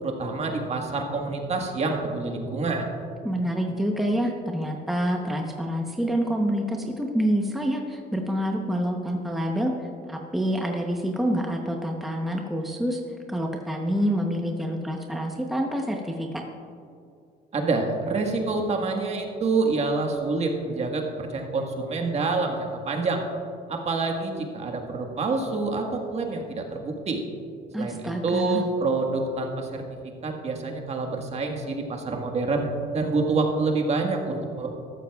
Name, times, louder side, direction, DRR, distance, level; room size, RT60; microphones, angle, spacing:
voice 1, 0.0-2.9 17.5-23.2 23.7-27.2 27.8-29.8 30.2-32.7 32.9-34.7, right 3 dB, 40° right, 2 dB, 1.5 m, -27 dB
voice 2, 3.2-9.7 10.1-13.0 13.3-16.4 27.7-28.6, equal, ahead, 1 dB, 0.9 m, -27 dB
14.0 x 12.5 x 2.4 m, 2.5 s
cardioid pair, 110°, 17 cm